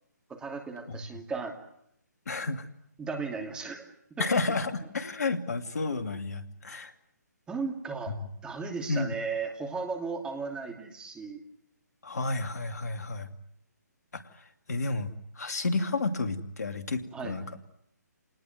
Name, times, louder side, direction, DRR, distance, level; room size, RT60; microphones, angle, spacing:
voice 1, 0.3-1.5 3.0-3.9 4.1-4.3 7.5-8.1 8.4-11.4 17.1-17.4, right 4 dB, 10° right, 4 dB, 2.8 m, -35 dB
voice 2, 2.3-2.6 4.2-6.9 8.9-9.1 12.0-13.3 14.7-15.1 15.4-17.4, left 3 dB, 60° left, 7 dB, 2.7 m, -31 dB
29.0 x 19.5 x 9.3 m, 0.79 s
figure-of-eight pair, 140°, 10 cm